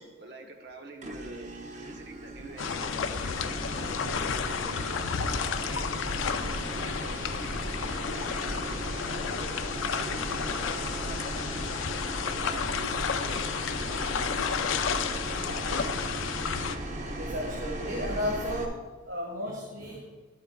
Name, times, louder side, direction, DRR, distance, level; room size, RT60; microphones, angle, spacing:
voice 1, 0.0-1.5 1.9-5.9 6.3-9.5 9.9-11.4 12.2-15.9, right 1 dB, 60° right, 3 dB, 1.1 m, -46 dB
sound 1, 1.0-18.6, right 1 dB, 40° right, 0.7 m, -37 dB
sound 2, 2.6-16.8, left 6 dB, 85° left, 0.5 m, -32 dB
voice 2, 17.2-18.8 19.1-20.0, equal, 75° right, -3 dB, 1.6 m, -33 dB
12.0 x 8.4 x 2.3 m, 1.3 s
head